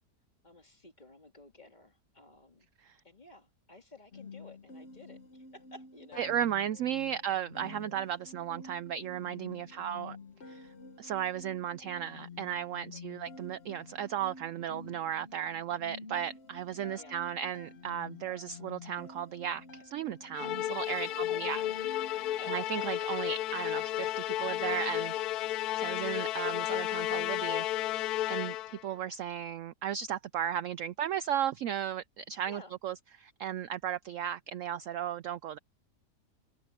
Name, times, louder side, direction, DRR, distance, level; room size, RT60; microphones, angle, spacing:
voice 1, 0.4-2.7 3.0-6.2 7.0-7.2 9.5-9.9 12.9-13.2 17.0-17.2 18.3-18.4 21.1-21.8 22.3-22.6 32.5-32.7, left 2 dB, 25° left, 2.5 m, -54 dB
sound 1, 4.1-22.5, left 4 dB, 45° left, 1.3 m, -50 dB
voice 2, 6.2-10.2 10.5-10.7 11.0-21.6 22.1-25.1 25.7-35.6, right 10 dB, 70° right, 0.7 m, -35 dB
Musical instrument, 20.3-28.9, left 14 dB, 75° left, 1.0 m, -33 dB
omnidirectional pair, 1.8 m